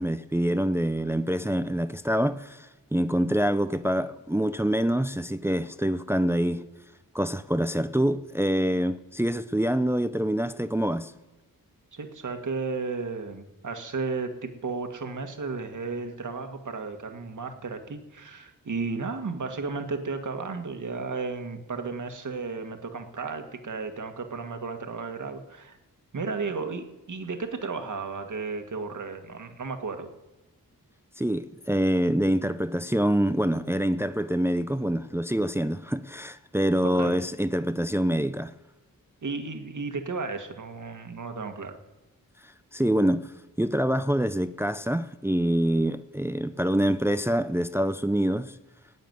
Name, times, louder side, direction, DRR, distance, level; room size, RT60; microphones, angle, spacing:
voice 1, 0.0-6.6 7.1-11.1 31.2-38.5 42.7-43.3 43.6-48.6, equal, 5° right, 0.5 m, -26 dB
voice 2, 11.9-25.8 26.1-30.1 36.8-37.2 39.2-41.8, right 4 dB, 55° right, 1.8 m, -34 dB
15.5 x 9.0 x 9.4 m
wide cardioid pair, 85°, 35 cm